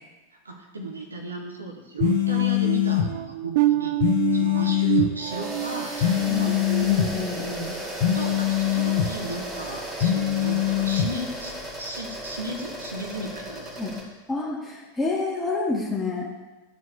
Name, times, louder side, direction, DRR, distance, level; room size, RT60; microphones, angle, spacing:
voice 1, 0.4-4.0 4.3-6.5 8.1-11.5 11.8-13.7, right 1 dB, 75° right, 2 dB, 1.0 m, -35 dB
sound 1, 2.0-3.1 4.0-5.1 6.0-7.1 8.0-9.1 10.0-11.1, left 12 dB, 50° left, 0.9 m, -23 dB
sound 2, 2.0-7.6 8.1-8.4 8.9-9.1, right 16 dB, 50° right, 0.3 m, -28 dB
sound 3, 5.2-14.0, right 1 dB, 20° right, 2.1 m, -35 dB
voice 2, 6.3-7.8 13.8-14.0 14.3-16.3, left 3 dB, 10° left, -5 dB, 1.9 m, -29 dB
12.5 x 4.6 x 2.7 m, 1.1 s
figure-of-eight pair, 90°, 0 cm